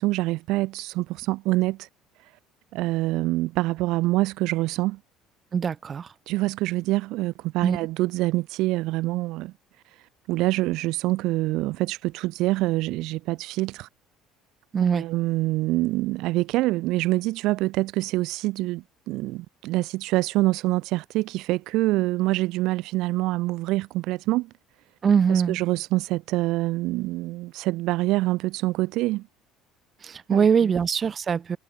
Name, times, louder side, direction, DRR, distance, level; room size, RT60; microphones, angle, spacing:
voice 1, 0.0-1.9 2.7-5.0 6.3-9.5 10.3-13.9 14.9-24.5 25.3-29.2 30.3-30.4, right 19 dB, 70° right, 0.6 m, -25 dB
voice 2, 5.5-6.1 7.6-7.8 14.7-15.1 25.0-25.6 30.0-31.6, right 7 dB, 30° right, 1.1 m, -22 dB
cardioid pair, 125°, 0 cm